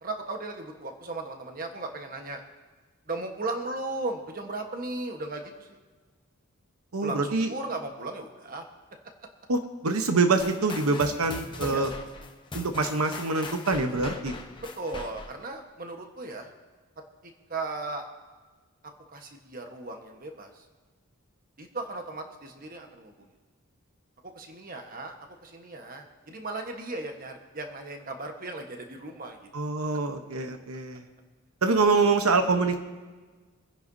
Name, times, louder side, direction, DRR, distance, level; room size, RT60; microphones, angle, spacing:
voice 1, 0.0-2.4 3.1-5.8 7.0-8.6 11.6-11.9 14.8-16.5 17.2-18.1 19.1-20.5 21.6-23.3 24.2-25.1 25.4-29.4, right 2 dB, 40° right, 4 dB, 1.2 m, -36 dB
voice 2, 6.9-7.5 9.5-11.9 12.5-14.3 29.5-31.0 31.6-32.8, right 3 dB, 85° right, 6 dB, 1.0 m, -25 dB
sound 1, 10.4-15.5, left 2 dB, 20° left, 0.9 m, -40 dB
25.0 x 10.0 x 2.7 m, 1.3 s
head